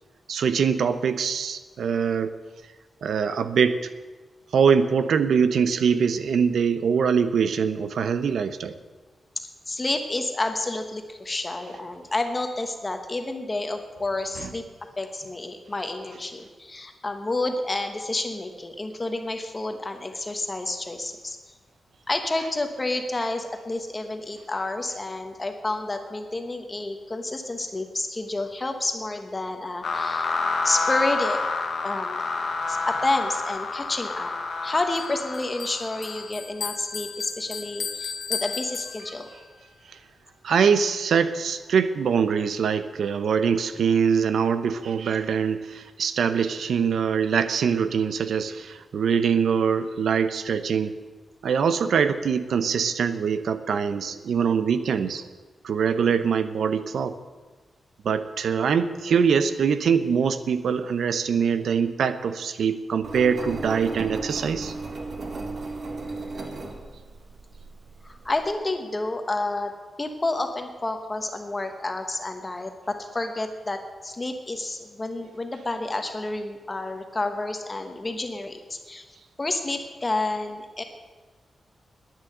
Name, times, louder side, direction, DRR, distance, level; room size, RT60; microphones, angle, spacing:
voice 1, 0.3-2.3 3.0-3.9 4.5-8.8 14.4-14.5 40.4-50.9 51.4-55.3 55.6-57.2 58.0-64.7, right 6 dB, 75° right, 11 dB, 0.8 m, -23 dB
voice 2, 9.4-14.6 15.0-21.4 22.1-30.3 30.6-31.4 31.8-32.2 32.7-34.3 34.6-39.3 68.0-69.7 70.0-79.0 79.4-80.8, left 2 dB, 20° left, 6 dB, 1.1 m, -30 dB
sound 1, 29.8-36.3, left 3 dB, 50° left, 1.1 m, -28 dB
Bell, 35.0-39.5, left 6 dB, 75° left, 1.3 m, -35 dB
Engine, 63.0-68.5, right 3 dB, 45° right, 1.8 m, -35 dB
10.5 x 10.5 x 7.8 m, 1.3 s
wide cardioid pair, 165°, 0 cm